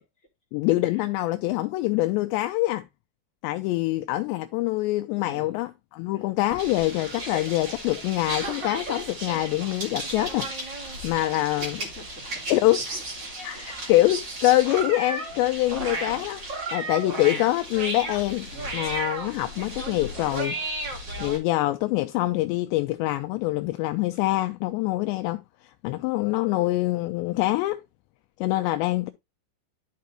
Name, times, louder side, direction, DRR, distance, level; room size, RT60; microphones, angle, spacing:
voice 1, 0.5-2.9 3.4-10.5 11.0-11.8 12.5-12.8 13.4-13.6 13.9-16.4 16.7-20.6 21.2-25.4 25.8-27.8 28.4-29.1, left 17 dB, 85° left, 2.7 m, -25 dB
voice 2, 5.2-5.6 6.1-6.3 11.5-12.5 12.9-13.0 13.5-13.9 17.2-17.4 18.5-18.8, left 3 dB, 20° left, 3.6 m, -45 dB
sound 1, 6.5-21.4, right 2 dB, 35° right, 1.9 m, -34 dB
11.5 x 5.5 x 2.9 m
omnidirectional pair, 5.3 m